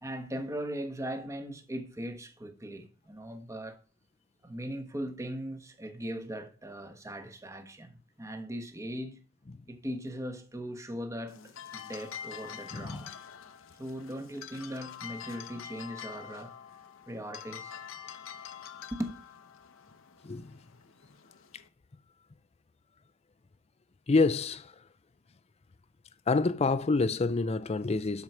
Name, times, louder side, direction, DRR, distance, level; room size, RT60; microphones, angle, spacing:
voice 1, 0.0-3.8 4.4-9.2 9.7-13.2 13.8-16.5 17.1-17.8 18.9-19.1, equal, 15° right, 1.2 m, -39 dB
sound 1, 11.3-21.7, left 8 dB, 75° left, 0.8 m, -46 dB
voice 2, 12.7-13.0 20.2-20.5 24.1-24.7 26.3-28.2, left 3 dB, 30° left, 0.5 m, -27 dB
12.5 x 4.7 x 5.5 m
head